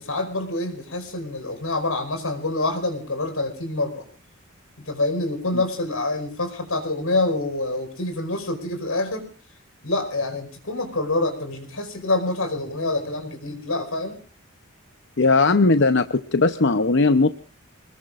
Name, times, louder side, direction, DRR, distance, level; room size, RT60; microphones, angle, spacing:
voice 1, 0.0-4.0 4.8-9.3 9.8-14.2, left 2 dB, 80° left, 7 dB, 5.0 m, -26 dB
voice 2, 15.2-17.3, left 3 dB, 55° left, 10 dB, 0.8 m, -18 dB
27.5 x 20.5 x 2.5 m, 0.41 s
head